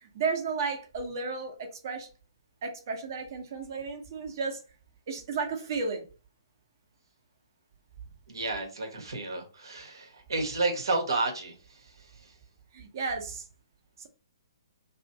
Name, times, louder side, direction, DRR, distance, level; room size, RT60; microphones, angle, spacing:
voice 1, 0.1-1.5 1.8-2.1 2.6-4.6 5.1-6.1 12.7-13.4, right 4 dB, 50° right, 1.0 m, -33 dB
voice 2, 8.3-11.5, right 3 dB, 70° right, 1.2 m, -31 dB
3.0 x 2.6 x 4.0 m
figure-of-eight pair, 125°, 2 cm